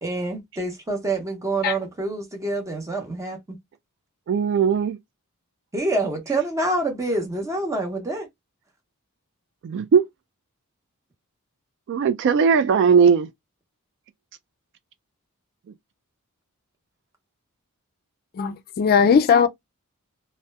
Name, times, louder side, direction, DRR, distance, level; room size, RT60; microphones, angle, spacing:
voice 1, 0.0-3.4 5.7-8.3, right 2 dB, 15° right, 0.7 m, -26 dB
voice 2, 4.3-5.0 9.6-10.0 11.9-13.3, right 6 dB, 55° right, 0.3 m, -18 dB
voice 3, 18.4-19.5, left 6 dB, 45° left, 0.3 m, -18 dB
2.7 x 2.1 x 2.2 m
head